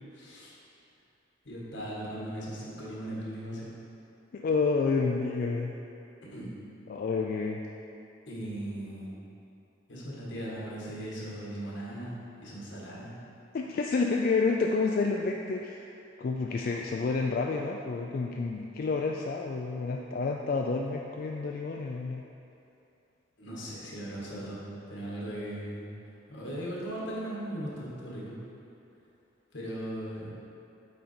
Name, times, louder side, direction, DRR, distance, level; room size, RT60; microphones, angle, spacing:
voice 1, 0.1-0.6 1.4-3.7 6.2-6.6 8.3-9.2 9.9-13.2 23.4-25.9 26.3-28.3 29.5-30.3, right 1 dB, 80° left, -6 dB, 1.6 m, -38 dB
voice 2, 4.3-5.7 6.9-7.6 13.5-15.9 16.2-22.2, left 4 dB, 50° left, 0 dB, 0.3 m, -29 dB
8.4 x 3.9 x 4.4 m, 2.7 s
head